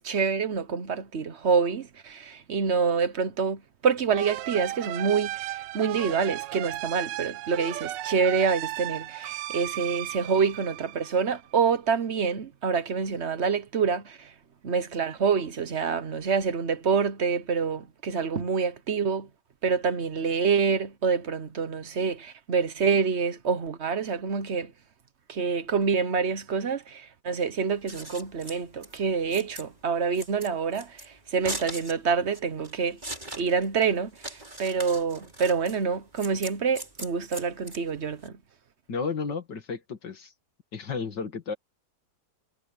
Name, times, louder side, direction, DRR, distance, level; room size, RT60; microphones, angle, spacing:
voice 1, 0.0-14.3 14.6-19.3 19.6-24.7 25.3-33.0 33.3-34.1 34.6-38.4, right 5 dB, 45° right, 1.1 m, -27 dB
sound 1, 4.1-11.5, right 16 dB, 85° right, 1.3 m, -35 dB
Scissors, 27.7-38.3, right 1 dB, 25° right, 5.8 m, -40 dB
voice 2, 38.9-40.3 40.7-41.5, left 5 dB, 75° left, 2.7 m, -32 dB
omnidirectional pair, 1.9 m